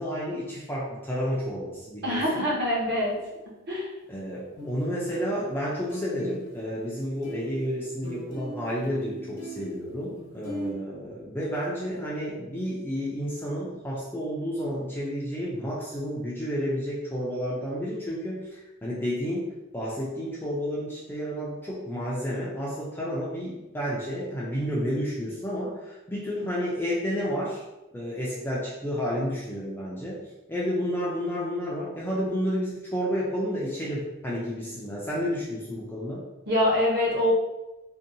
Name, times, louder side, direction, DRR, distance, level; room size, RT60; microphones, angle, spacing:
voice 1, 0.0-2.5 4.1-27.6 27.9-30.2 30.5-36.2, equal, 10° left, -6 dB, 0.4 m, -31 dB
voice 2, 2.0-3.1 3.7-3.9 36.5-37.3, left 1 dB, 45° right, -4 dB, 0.8 m, -24 dB
sound 1, 3.0-3.2 4.6-4.8 5.1-6.9 7.2-10.7, right 1 dB, 75° left, 0.9 m, -39 dB
2.7 x 2.1 x 2.6 m, 1.0 s
head